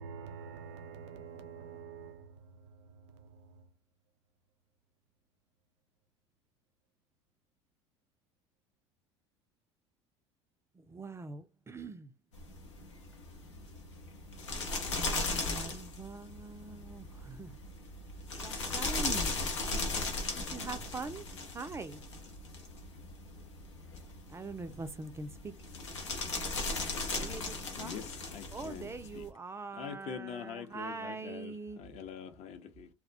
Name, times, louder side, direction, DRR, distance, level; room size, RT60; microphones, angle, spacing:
voice 1, 0.0-2.4 2.9-3.6, right 6 dB, 80° right, 0.5 m, -47 dB
voice 2, 10.8-12.1 14.9-17.6 18.4-19.3 20.4-22.0 24.3-25.5 27.1-28.0 28.5-31.8, right 4 dB, 20° right, 0.3 m, -43 dB
sound 1, 12.3-29.3, left 3 dB, 85° left, 0.6 m, -38 dB
voice 3, 27.8-28.9 29.1-29.3 29.7-32.9, left 7 dB, 50° left, 0.6 m, -44 dB
2.2 x 2.1 x 2.6 m
hypercardioid pair, 65°, 15 cm